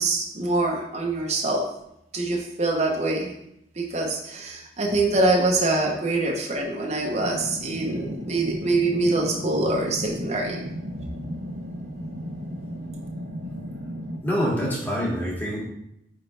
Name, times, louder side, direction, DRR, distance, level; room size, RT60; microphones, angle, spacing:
voice 1, 0.0-1.6 2.1-3.3 3.8-10.6, right 2 dB, 40° right, 0 dB, 0.9 m, -24 dB
sound 1, 7.2-14.2, equal, 80° right, 1.0 m, -35 dB
voice 2, 14.2-15.6, equal, 10° left, -6 dB, 2.0 m, -26 dB
8.6 x 3.7 x 3.4 m, 0.79 s
head